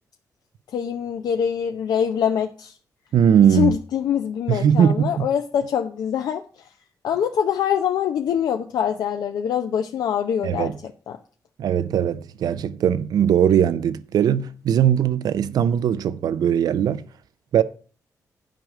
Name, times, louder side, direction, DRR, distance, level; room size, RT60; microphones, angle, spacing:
voice 1, 0.7-2.7 3.5-6.7 7.0-10.7, left 8 dB, 90° left, 0.7 m, -24 dB
voice 2, 3.1-3.7 4.5-5.3 10.4-10.8 11.6-17.0 17.5-17.6, right 9 dB, 80° right, 0.6 m, -19 dB
9.3 x 5.0 x 7.4 m
cardioid pair, 110°, 7 cm